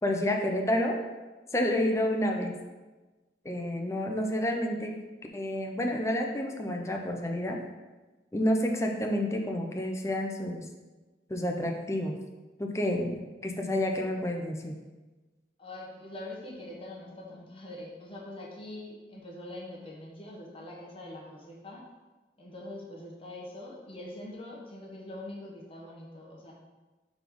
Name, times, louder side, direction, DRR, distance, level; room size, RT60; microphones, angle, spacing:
voice 1, 0.0-1.0 1.5-2.5 3.4-4.9 5.3-7.6 8.3-10.7 11.3-12.2 12.6-14.7, left 1 dB, 15° left, 2 dB, 0.6 m, -29 dB
voice 2, 15.6-21.9 22.4-26.5, left 1 dB, 30° left, -3 dB, 1.2 m, -43 dB
4.7 x 4.1 x 5.2 m, 1.2 s
head